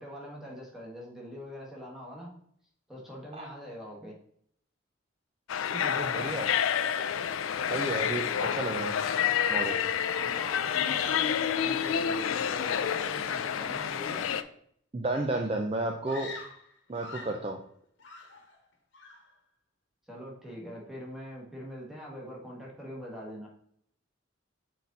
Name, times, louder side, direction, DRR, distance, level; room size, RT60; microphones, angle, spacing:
voice 1, 0.0-2.3 2.9-4.1 10.1-14.3 20.1-23.5, equal, ahead, -3 dB, 1.6 m, -43 dB
sound 1, 5.5-14.4, left 8 dB, 85° left, 0.4 m, -29 dB
voice 2, 5.7-6.5 7.7-9.0 9.5-9.8 14.9-16.4 16.9-17.6, right 2 dB, 30° right, 3 dB, 0.5 m, -32 dB
Screaming, 16.0-17.5 18.0-18.7 18.9-19.4, left 3 dB, 65° left, 1.1 m, -45 dB
6.3 x 4.1 x 4.0 m, 0.66 s
head